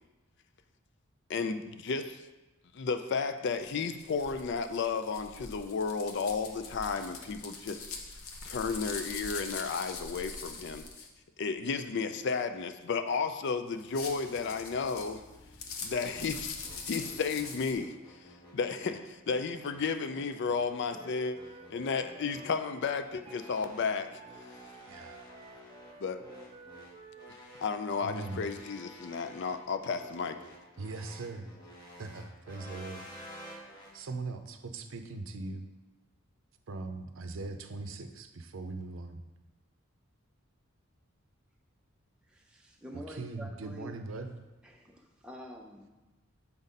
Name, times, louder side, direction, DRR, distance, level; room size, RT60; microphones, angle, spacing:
voice 1, 1.3-2.2 2.7-7.9 8.4-10.9 11.4-15.2 15.8-16.6 16.9-21.4 21.7-24.2 26.0-26.2 27.6-30.4, left 5 dB, 55° left, 10 dB, 0.4 m, -33 dB
sound 1, 3.6-11.1 13.7-17.8, left 4 dB, 80° left, 0.9 m, -43 dB
sound 2, 16.6-33.9, equal, 20° left, 1.1 m, -51 dB
Wind instrument woodwind instrument, 20.9-27.4, right 4 dB, 25° right, 0.3 m, -52 dB
voice 2, 24.8-25.2 28.0-28.4 30.8-31.5 32.0-33.1 33.9-35.7 36.7-39.2 42.9-44.3, right 3 dB, 70° right, 7 dB, 0.6 m, -40 dB
voice 3, 42.3-43.9 44.6-45.9, equal, 5° right, 0 dB, 0.7 m, -47 dB
7.0 x 4.1 x 5.2 m, 1.1 s
head